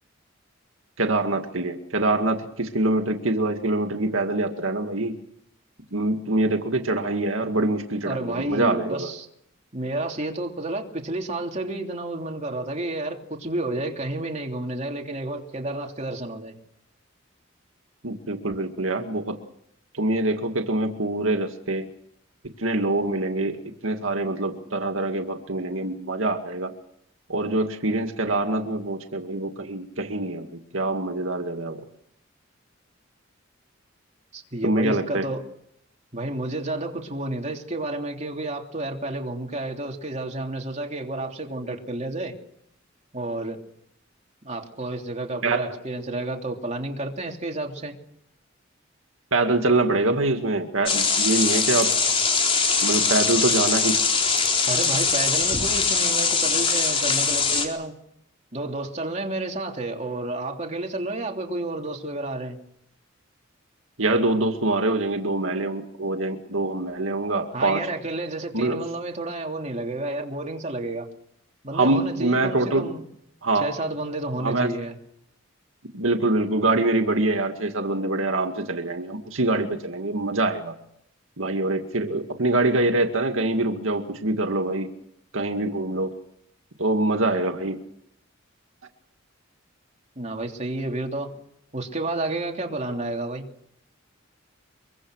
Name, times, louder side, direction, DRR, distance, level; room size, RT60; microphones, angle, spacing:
voice 1, 1.0-5.2 5.9-9.1 18.0-19.4 19.9-21.9 22.6-26.7 27.3-31.8 34.6-35.3 45.4-45.7 49.3-51.9 52.8-54.0 64.0-67.8 68.5-68.8 71.7-72.9 73.4-73.7 74.4-74.7 75.9-80.8 81.4-84.9 85.3-86.1 86.8-87.8, right 2 dB, 85° right, 5 dB, 2.2 m, -24 dB
voice 2, 8.0-9.3 9.7-16.6 34.3-35.4 36.1-42.3 43.1-43.6 44.4-47.9 54.7-57.9 58.5-62.6 67.5-71.1 71.6-73.0 73.6-75.0 90.1-91.3 91.7-93.5, right 2 dB, 35° right, 2 dB, 3.2 m, -30 dB
sound 1, 50.9-57.7, left 5 dB, 30° left, 4.1 m, -22 dB
24.0 x 23.5 x 6.4 m, 0.75 s
head